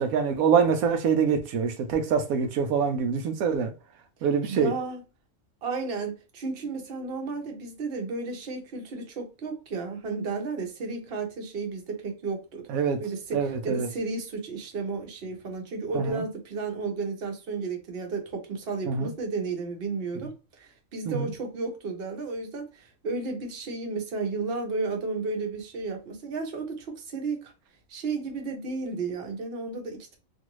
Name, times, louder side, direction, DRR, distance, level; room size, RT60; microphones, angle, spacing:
voice 1, 0.0-3.7 4.2-4.7 12.7-13.0 13.3-13.9 15.9-16.2 18.9-19.1 21.1-21.3, right 6 dB, 85° right, 1.0 m, -25 dB
voice 2, 4.5-5.0 5.6-12.6 13.0-20.3 20.6-27.5 27.9-30.2, right 4 dB, 50° right, 1.0 m, -33 dB
2.7 x 2.5 x 3.0 m
omnidirectional pair, 1.4 m